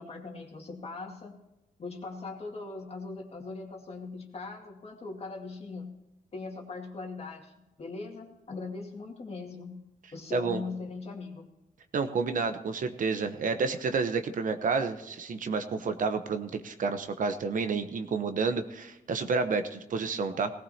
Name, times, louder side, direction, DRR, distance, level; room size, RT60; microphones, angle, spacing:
voice 1, 0.0-1.4 1.8-5.9 6.3-7.5 7.8-9.8 10.1-11.5, left 3 dB, 40° left, 1 dB, 2.2 m, -40 dB
voice 2, 11.9-20.5, right 4 dB, 60° right, 8 dB, 1.0 m, -30 dB
18.5 x 17.0 x 2.9 m, 0.99 s
cardioid pair, 95°, 15 cm